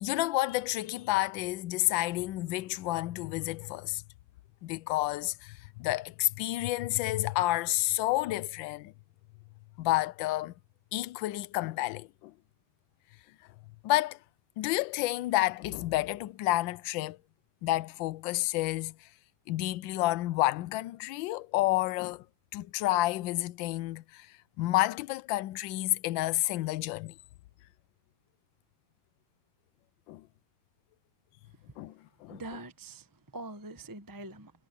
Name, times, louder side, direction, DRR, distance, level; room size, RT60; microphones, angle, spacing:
voice 1, 0.0-4.0 4.6-8.9 9.8-10.5 10.9-12.3 13.8-14.2 14.6-17.2 17.6-19.0 19.5-22.2 22.5-24.3 24.6-27.1 30.1-30.2 31.8-31.9 32.2-32.4, left 17 dB, 75° left, 1.3 m, -30 dB
voice 2, 32.3-34.5, right 2 dB, 15° right, 0.9 m, -43 dB
omnidirectional pair, 2.2 m